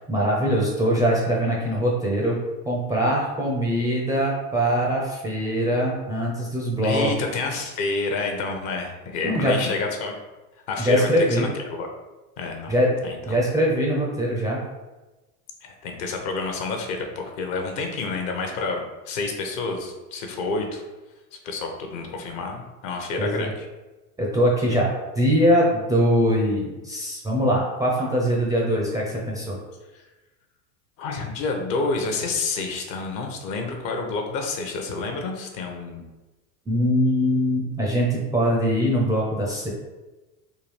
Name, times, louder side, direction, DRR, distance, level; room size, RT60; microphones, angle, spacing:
voice 1, 0.1-2.4 2.6-7.1 9.2-9.6 10.8-11.5 12.7-12.9 13.3-14.6 23.2-23.5 24.2-29.6 36.7-39.7, equal, 10° right, -3 dB, 0.4 m, -22 dB
voice 2, 6.8-10.1 10.7-11.9 12.4-12.7 13.0-13.4 15.6-20.8 21.4-23.7 31.0-36.0, left 3 dB, 50° left, 3 dB, 0.8 m, -29 dB
3.8 x 2.3 x 3.1 m, 1.1 s
hypercardioid pair, 85°, 49 cm